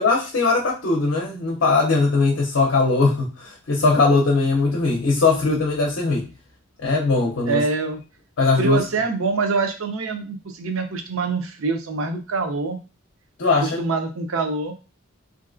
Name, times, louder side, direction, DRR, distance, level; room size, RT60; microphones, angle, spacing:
voice 1, 0.0-6.3 6.8-7.6 8.4-8.8 13.4-13.8, left 3 dB, 60° left, 0.5 m, -20 dB
voice 2, 7.5-8.0 8.6-12.8 13.6-14.7, right 4 dB, 85° right, 0.6 m, -25 dB
3.1 x 2.6 x 2.5 m
head